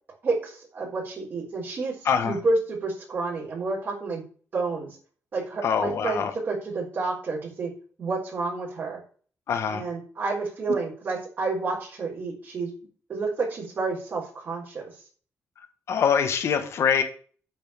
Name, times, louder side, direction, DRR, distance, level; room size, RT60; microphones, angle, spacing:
voice 1, 0.2-1.9 2.2-4.2 4.5-4.9 5.3-7.7 8.0-9.0 9.7-12.7 13.1-14.8, right 3 dB, 40° right, -2 dB, 4.0 m, -29 dB
voice 2, 2.0-2.4 5.6-6.3 9.5-9.8 15.9-17.0, left 7 dB, 60° left, 7 dB, 1.2 m, -24 dB
9.0 x 4.3 x 7.0 m, 0.43 s
wide cardioid pair, 160°, 5 cm